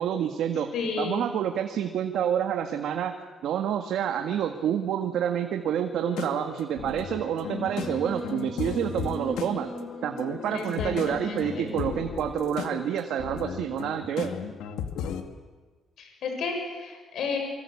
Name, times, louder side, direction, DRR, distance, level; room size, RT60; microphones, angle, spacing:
voice 1, 0.0-0.7 1.0-3.1 3.4-9.7 10.0-14.3, right 9 dB, 80° right, 5 dB, 1.8 m, -28 dB
voice 2, 0.7-1.3 10.5-11.7 16.0-17.4, left 5 dB, 75° left, 3 dB, 7.2 m, -32 dB
sound 1, 6.1-15.2, left 7 dB, 90° left, 2.2 m, -36 dB
Singing, 7.4-12.2, equal, 25° left, 7.9 m, -40 dB
25.0 x 25.0 x 8.7 m, 1.4 s
cardioid pair, 90°, 0 cm